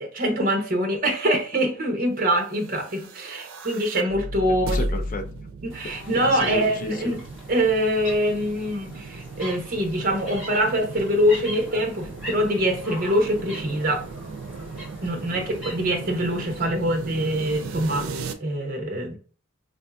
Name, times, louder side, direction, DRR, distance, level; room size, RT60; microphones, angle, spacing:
voice 1, 0.0-4.8 5.6-7.2 7.5-14.0 15.0-19.1, equal, 40° right, 3 dB, 0.8 m, -24 dB
sound 1, 2.6-18.3, right 2 dB, 85° right, 0.5 m, -36 dB
voice 2, 4.6-5.2 5.8-7.2 15.3-15.4, left 1 dB, 40° left, 4 dB, 0.5 m, -33 dB
sound 2, 5.7-16.7, equal, 5° right, 1.3 m, -41 dB
4.6 x 2.6 x 2.3 m, 0.41 s
head